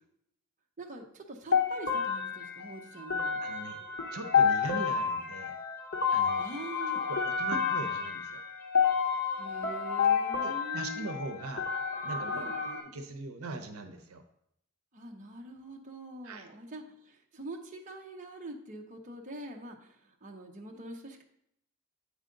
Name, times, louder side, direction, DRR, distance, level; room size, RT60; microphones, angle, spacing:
voice 1, 0.8-3.5 6.4-7.1 9.3-11.1 12.3-12.6 14.9-21.2, right 1 dB, 35° right, 2 dB, 0.7 m, -44 dB
sound 1, 1.5-12.8, left 6 dB, 45° left, 1.0 m, -30 dB
voice 2, 3.4-3.8 4.1-5.6 6.1-6.4 6.9-8.4 10.4-11.7 12.0-14.2 16.2-16.5, right 2 dB, 70° right, 7 dB, 0.7 m, -41 dB
8.3 x 4.9 x 3.8 m, 0.74 s
head